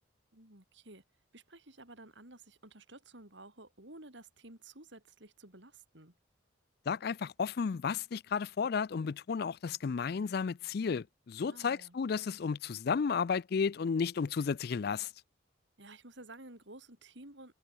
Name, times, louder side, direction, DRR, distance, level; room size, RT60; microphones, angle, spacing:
voice 1, 0.3-1.0 1.3-6.1 11.5-12.0 15.8-17.5, right 2 dB, 65° right, 4.5 m, -53 dB
voice 2, 6.9-15.1, left 5 dB, 50° left, 0.4 m, -33 dB
head